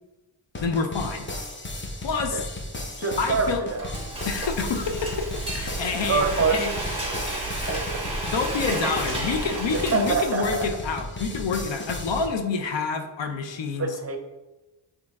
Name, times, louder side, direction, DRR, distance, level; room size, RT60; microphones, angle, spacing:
sound 1, 0.5-12.3, left 1 dB, 25° left, 0.7 m, -35 dB
voice 1, 0.6-1.3 2.0-2.5 3.2-3.6 4.3-6.7 8.3-13.9, left 5 dB, 65° left, 6 dB, 0.7 m, -28 dB
voice 2, 3.0-3.9 6.1-6.6 7.7-8.1 9.7-10.7 13.8-14.2, right 4 dB, 30° right, 5 dB, 0.6 m, -25 dB
Frying (food), 3.4-10.5, right 2 dB, 10° right, 1.3 m, -32 dB
5.0 x 3.0 x 3.5 m, 1.1 s
cardioid pair, 60°, 47 cm